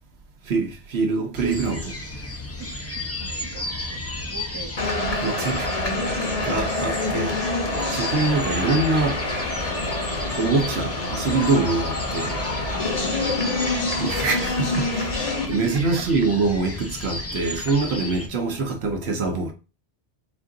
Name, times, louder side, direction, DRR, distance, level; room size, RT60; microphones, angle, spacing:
voice 1, 0.4-2.0 5.2-5.7 6.4-7.4 7.9-9.2 10.3-12.4 14.0-15.2 15.5-19.5, right 3 dB, 65° right, 1.1 m, -24 dB
sound 1, 1.3-18.3, left 2 dB, 20° left, 0.4 m, -33 dB
voice 2, 3.2-4.7 6.4-6.7 7.0-7.2 12.9-14.1 15.5-16.1, right 3 dB, 30° right, 0.6 m, -38 dB
sound 2, 4.8-15.5, left 2 dB, 35° left, 0.9 m, -26 dB
4.4 x 2.4 x 3.7 m
omnidirectional pair, 1.2 m